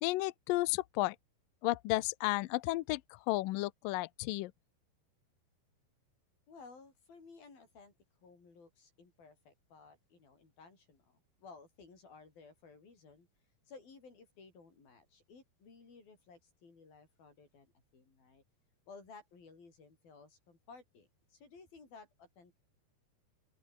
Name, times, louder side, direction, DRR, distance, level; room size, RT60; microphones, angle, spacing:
voice 1, 0.0-1.2 1.6-4.5, left 19 dB, 80° left, 2.0 m, -33 dB
voice 2, 6.5-7.9 8.2-13.3 13.7-18.4 18.9-22.6, left 4 dB, 55° left, 8.8 m, -57 dB
open air
omnidirectional pair, 4.9 m